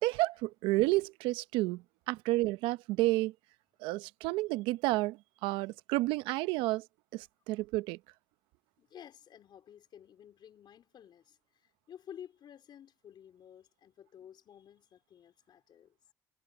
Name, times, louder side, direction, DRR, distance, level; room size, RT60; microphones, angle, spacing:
voice 1, 0.0-3.3 3.8-6.9 7.1-8.0, right 19 dB, 85° right, 0.7 m, -31 dB
voice 2, 8.8-16.1, left 9 dB, 65° left, 3.9 m, -53 dB
hypercardioid pair, 55°, 8 cm